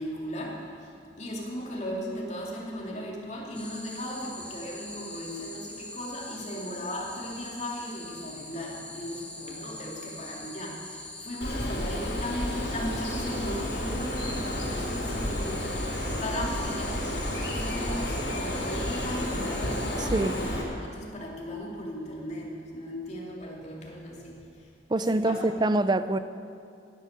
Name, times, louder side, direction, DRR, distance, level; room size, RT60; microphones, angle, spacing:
voice 1, 0.0-17.1 17.5-24.7 25.1-25.5, equal, 40° left, -2 dB, 2.9 m, -37 dB
sound 1, 3.5-20.5, left 2 dB, 10° left, 1.7 m, -43 dB
Bird, 11.4-20.6, left 1 dB, 65° left, 3.9 m, -31 dB
voice 2, 20.0-20.4 24.9-26.2, right 2 dB, 25° right, 12 dB, 0.5 m, -25 dB
16.5 x 11.0 x 6.8 m, 2.5 s
head